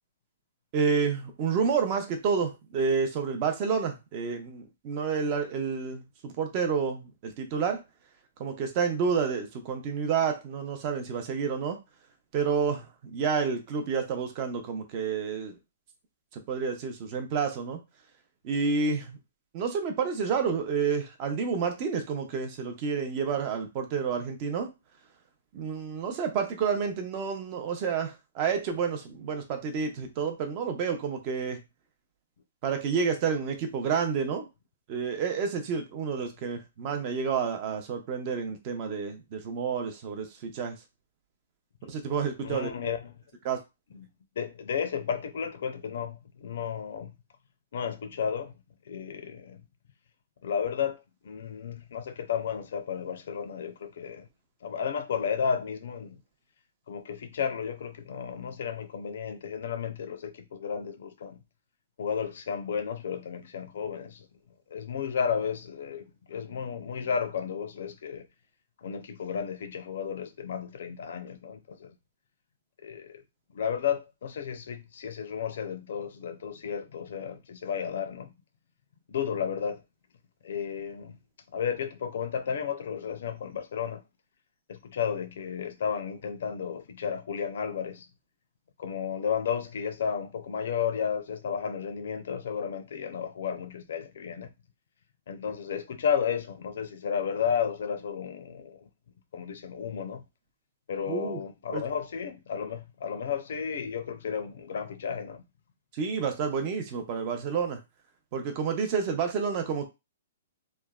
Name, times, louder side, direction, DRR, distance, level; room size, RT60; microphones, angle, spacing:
voice 1, 0.7-7.8 8.4-11.8 12.3-15.6 16.5-17.8 18.4-19.2 19.5-24.7 25.5-31.6 32.6-34.5 34.9-40.8 41.8-42.9 43.4-43.6 101.1-101.4 101.7-101.8 105.9-107.8 108.3-109.9, right 6 dB, 35° right, 0.6 m, -29 dB
voice 2, 42.4-43.1 43.9-44.1 44.4-47.1 47.7-48.5 48.9-49.6 50.4-54.3 54.6-56.2 56.9-61.4 62.0-64.3 64.7-68.3 68.8-72.0 72.8-73.2 73.5-78.3 79.1-79.8 80.4-81.2 81.5-84.0 84.7-88.1 88.8-94.5 95.3-98.9 99.3-100.2 100.9-105.4, left 7 dB, 65° left, 0.5 m, -33 dB
3.2 x 2.0 x 2.3 m
hypercardioid pair, 160°, 0 cm